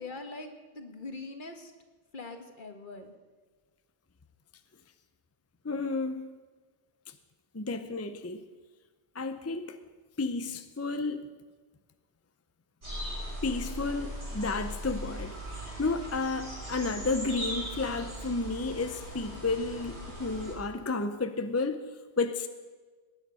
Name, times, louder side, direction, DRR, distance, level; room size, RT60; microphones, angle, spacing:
voice 1, 0.0-1.7 2.1-3.1, left 3 dB, 50° left, 6 dB, 1.5 m, -42 dB
voice 2, 5.6-6.4 7.5-8.4 9.1-9.8 10.2-11.2 13.4-21.8 22.2-22.5, left 3 dB, 20° left, 9 dB, 0.4 m, -32 dB
sound 1, 12.8-20.5, equal, 80° right, 6.3 m, -39 dB
19.0 x 9.5 x 5.5 m, 1.4 s
omnidirectional pair, 1.1 m